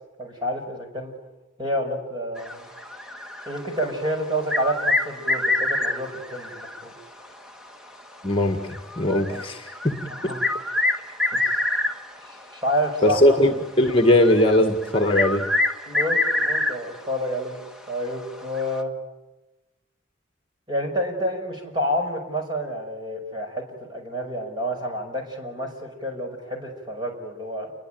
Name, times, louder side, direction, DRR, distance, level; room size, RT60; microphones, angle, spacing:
voice 1, 0.2-1.1 1.6-2.6 3.5-6.9 9.3-9.4 10.1-10.4 11.3-11.7 12.2-13.4 15.9-17.6 17.9-18.9 20.7-27.7, equal, 20° right, 2 dB, 5.7 m, -29 dB
sound 1, 2.4-3.9 4.3-7.0 7.2-7.3 8.0-8.1 8.7-12.3 13.0-13.2 13.8-17.0 17.4-17.5 18.5-18.8, left 2 dB, 5° right, 1.4 m, -26 dB
voice 2, 8.2-9.9 10.2-10.3 13.0-15.4, left 1 dB, 25° left, 5 dB, 1.8 m, -20 dB
29.0 x 22.0 x 9.2 m, 1.0 s
head